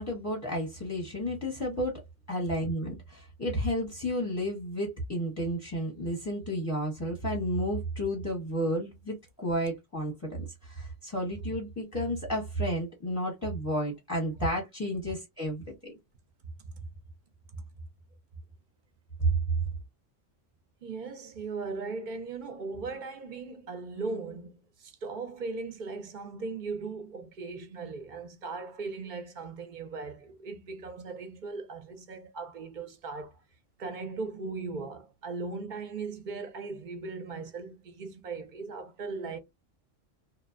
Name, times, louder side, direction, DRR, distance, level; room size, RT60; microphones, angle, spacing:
voice 1, 0.0-2.0 2.3-15.9, equal, 15° left, 0.7 m, -32 dB
voice 2, 20.8-33.4 33.8-39.4, right 4 dB, 50° right, 0.6 m, -38 dB
2.7 x 2.1 x 2.4 m
omnidirectional pair, 1.3 m